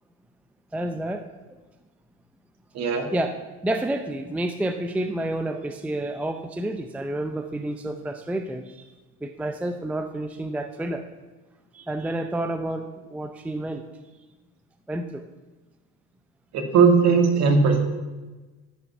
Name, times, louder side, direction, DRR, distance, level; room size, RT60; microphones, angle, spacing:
voice 1, 0.7-1.6 3.1-3.4 3.6-8.9 9.2-11.1 11.7-13.8 14.9-15.2, right 1 dB, 5° right, 7 dB, 0.5 m, -29 dB
voice 2, 2.7-3.1 16.5-17.8, right 5 dB, 50° right, 4 dB, 2.1 m, -18 dB
13.5 x 5.8 x 7.1 m, 1.2 s
cardioid pair, 140°, 34 cm